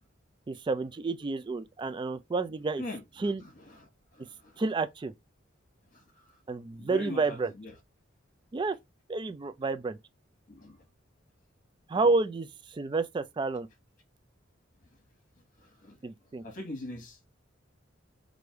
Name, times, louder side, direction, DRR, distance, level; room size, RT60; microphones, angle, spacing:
voice 1, 0.5-2.8 3.2-3.4 4.6-5.1 6.5-7.5 8.5-8.8 9.1-10.0 11.9-13.7 16.0-16.4, right 3 dB, 25° right, 0.3 m, -30 dB
voice 2, 2.8-4.6 5.9-6.3 6.8-7.7 10.5-10.8 15.6-16.0 16.4-17.3, left 1 dB, 45° left, 1.1 m, -43 dB
3.2 x 2.6 x 4.5 m
head